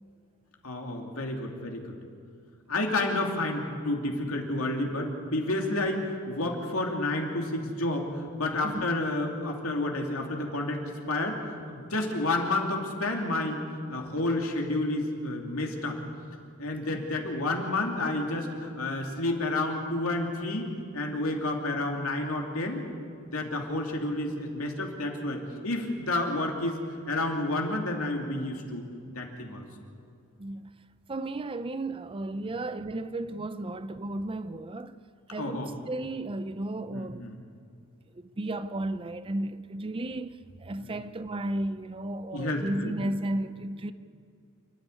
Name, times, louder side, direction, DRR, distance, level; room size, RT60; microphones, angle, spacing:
voice 1, 0.6-1.9 2.7-11.4 11.7-13.6 13.9-16.0 16.6-22.8 23.3-26.8 27.1-28.8 29.1-29.6 35.4-35.7 36.9-37.4 40.8-40.9 42.3-42.9, left 2 dB, 75° left, 2.8 m, -30 dB
voice 2, 30.4-30.7 31.1-35.0 35.3-37.4 38.1-43.9, right 1 dB, 25° right, 0.5 m, -34 dB
28.0 x 10.0 x 9.8 m
head